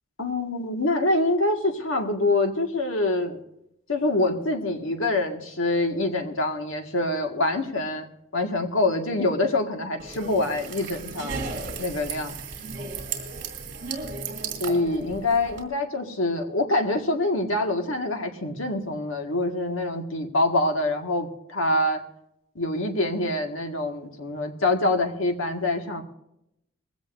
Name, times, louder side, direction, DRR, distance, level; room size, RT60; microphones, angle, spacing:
voice 1, 0.2-3.4 3.9-8.1 8.3-11.4 11.8-12.3 14.6-22.0 22.6-26.0, left 2 dB, 75° left, 3 dB, 1.8 m, -25 dB
sound 1, 10.0-15.6, right 4 dB, 55° right, 2.9 m, -35 dB
20.5 x 16.0 x 2.6 m, 0.79 s
head